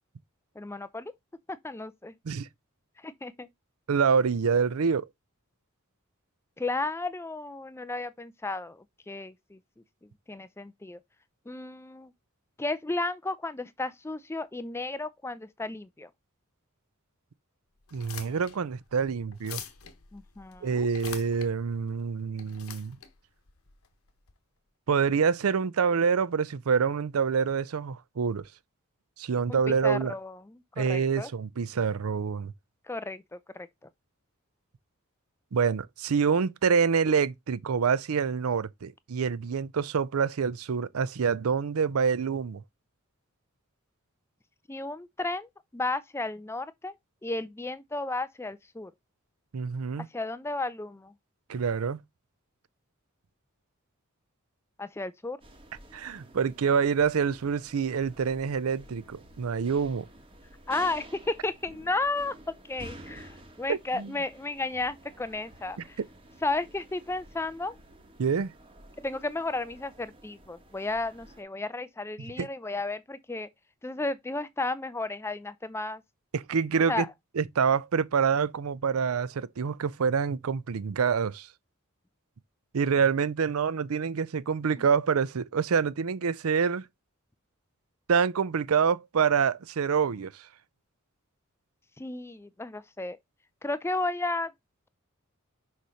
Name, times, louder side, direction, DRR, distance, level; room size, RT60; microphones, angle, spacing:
voice 1, 0.6-1.1 1.5-2.2 3.0-3.5 6.6-9.6 10.3-11.0 11.5-12.1 12.6-16.1 20.1-20.9 29.5-31.3 32.9-33.7 44.7-46.9 47.2-48.9 50.0-51.1 54.8-55.4 60.7-66.0 66.4-67.7 69.0-73.5 73.8-76.0 76.9-77.1 84.8-84.9 92.0-93.2 93.6-94.5, left 2 dB, 10° left, 0.4 m, -33 dB
voice 2, 3.9-5.1 17.9-19.6 20.6-23.0 24.9-28.4 29.2-30.1 30.8-32.5 35.5-42.6 49.5-50.1 51.5-52.0 55.9-60.1 63.7-64.1 68.2-68.5 72.4-72.5 76.3-77.0 77.4-81.5 82.7-86.8 88.1-90.5, right 6 dB, 90° right, 0.5 m, -26 dB
sound 1, 17.8-24.3, left 8 dB, 85° left, 1.0 m, -46 dB
sound 2, 55.4-71.4, right 1 dB, 25° right, 1.5 m, -51 dB
6.5 x 3.2 x 5.6 m
head